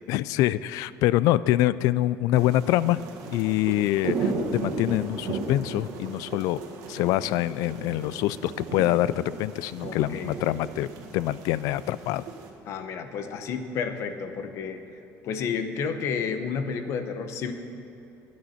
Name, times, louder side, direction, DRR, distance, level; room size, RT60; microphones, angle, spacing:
voice 1, 0.1-3.0 3.3-6.6 6.9-10.9 11.1-12.2, left 15 dB, 70° left, 18 dB, 0.3 m, -25 dB
sound 1, 2.3-12.5, right 4 dB, 60° right, 1.8 m, -35 dB
voice 2, 9.8-10.3 12.7-14.8 15.2-17.5, left 6 dB, 50° left, 8 dB, 0.9 m, -31 dB
22.5 x 9.5 x 4.3 m, 2.8 s
cardioid pair, 170°, 6 cm